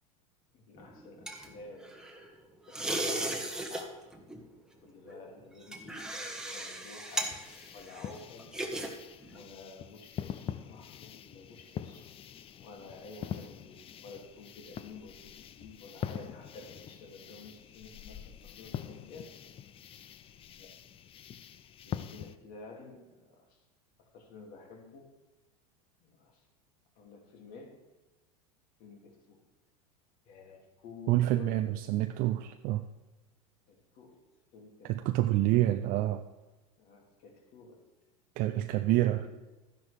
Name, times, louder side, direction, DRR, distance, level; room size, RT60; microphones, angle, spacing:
voice 1, 0.5-2.0 2.7-4.0 4.8-6.1 6.5-7.4 7.7-8.5 9.3-12.1 12.6-19.3 20.6-20.9 21.8-23.6 24.0-25.1 26.0-26.4 27.0-27.8 28.8-29.4 30.3-31.6 33.7-34.2 34.5-35.1 36.8-37.9 38.5-39.3, left 3 dB, 55° left, 1 dB, 2.7 m, -51 dB
sound 1, 0.8-2.3 2.7-3.8 4.1-4.4 5.1-8.9 9.2-9.4, right 1 dB, 5° right, 1.4 m, -37 dB
sound 2, 7.1-22.4, left 9 dB, 30° left, 0.5 m, -44 dB
voice 2, 31.1-32.8 34.8-36.2 38.4-39.2, right 15 dB, 50° right, 8 dB, 0.5 m, -27 dB
12.5 x 10.0 x 3.5 m, 1.1 s
hypercardioid pair, 100°, 18 cm